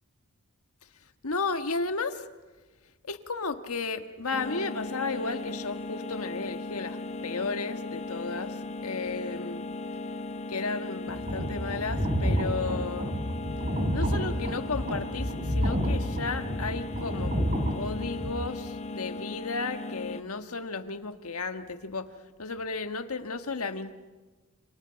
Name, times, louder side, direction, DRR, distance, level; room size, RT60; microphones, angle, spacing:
voice 1, 1.2-2.2 3.0-7.0 7.2-9.7 10.5-13.2 13.9-17.4 17.7-22.1 22.4-23.9, left 4 dB, 75° left, 8 dB, 1.5 m, -33 dB
sound 1, 4.3-20.2, left 2 dB, 30° left, 0.9 m, -37 dB
sound 2, 11.1-18.3, equal, 35° right, 3.8 m, -30 dB
28.0 x 27.5 x 5.8 m, 1.2 s
head